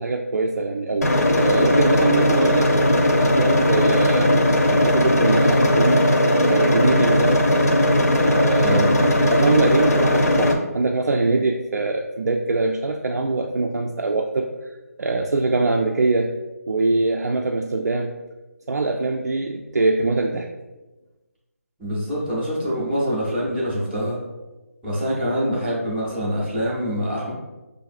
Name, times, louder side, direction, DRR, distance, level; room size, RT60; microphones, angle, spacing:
voice 1, 0.0-2.8 3.1-4.4 4.7-6.1 6.5-7.5 8.2-14.5 15.0-16.4 16.7-18.1 18.7-20.5, right 3 dB, 85° right, 2 dB, 0.4 m, -23 dB
sound 1, 1.0-10.5, left 1 dB, 75° left, 0.7 m, -18 dB
voice 2, 21.8-24.2 24.8-27.3, equal, ahead, -16 dB, 0.4 m, -25 dB
6.2 x 2.5 x 2.4 m, 1.1 s
figure-of-eight pair, 170°, 9 cm